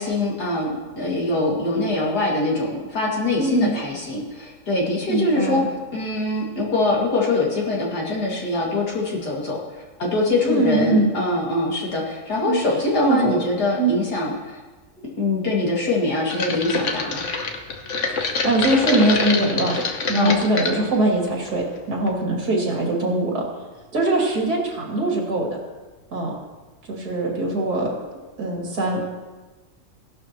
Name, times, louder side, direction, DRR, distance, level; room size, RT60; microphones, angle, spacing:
voice 1, 0.0-5.6 5.9-14.6 15.0-17.3 20.1-20.4, left 2 dB, 90° left, -3 dB, 2.9 m, -23 dB
voice 2, 3.4-3.8 5.1-5.6 10.4-11.1 12.5-12.6 13.0-13.4 13.8-13.9 18.1-19.8 20.1-23.4 23.9-25.6 26.1-26.3 26.9-27.9 28.4-29.2, right 2 dB, 80° right, -2 dB, 3.1 m, -22 dB
sound 1, 16.3-20.8 21.3-21.8 22.1-22.2, left 4 dB, 55° left, 1.3 m, -25 dB
16.0 x 11.5 x 3.0 m, 1.2 s
omnidirectional pair, 1.7 m